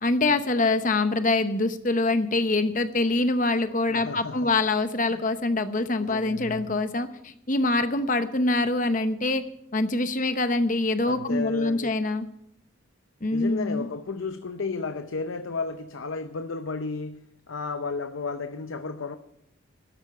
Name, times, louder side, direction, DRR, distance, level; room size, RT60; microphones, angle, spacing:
voice 1, 0.0-9.4 9.7-12.2 13.2-13.9, left 2 dB, 40° left, 0.9 m, -24 dB
voice 2, 3.9-4.6 5.0-5.2 6.0-6.8 11.0-12.0 13.3-19.2, left 4 dB, 75° left, 0.7 m, -33 dB
12.0 x 8.2 x 8.6 m
head